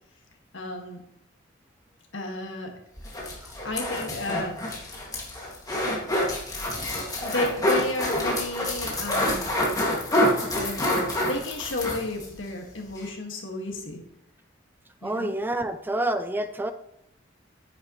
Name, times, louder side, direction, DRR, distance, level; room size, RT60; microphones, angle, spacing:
voice 1, 0.5-1.0 2.1-2.7 3.6-5.0 7.2-9.5 10.5-14.0 15.0-15.4, left 1 dB, 65° left, 2 dB, 1.9 m, -33 dB
sound 1, 3.0-12.3 12.6-12.7 13.0-13.1, left 1 dB, 20° left, 2.0 m, -27 dB
voice 2, 15.0-16.7, right 1 dB, 10° right, 11 dB, 0.3 m, -28 dB
9.8 x 9.6 x 3.1 m, 0.81 s
head